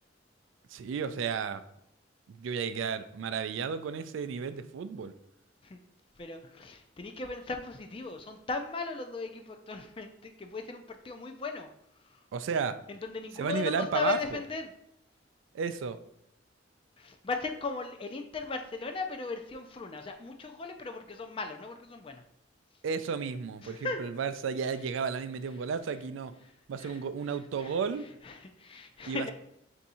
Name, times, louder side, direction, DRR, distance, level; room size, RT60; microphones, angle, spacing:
voice 1, 0.7-1.6 2.3-5.1 12.3-12.8 13.4-14.4 15.5-16.0 22.8-26.3 26.7-28.0 29.1-29.3, right 6 dB, 80° right, 11 dB, 0.3 m, -33 dB
voice 2, 6.2-11.7 12.0-12.2 12.9-14.7 17.0-22.2 23.6-24.0 26.8-27.0 27.6-27.7 28.2-29.3, left 4 dB, 30° left, 5 dB, 0.3 m, -37 dB
3.5 x 2.7 x 4.1 m, 0.77 s
head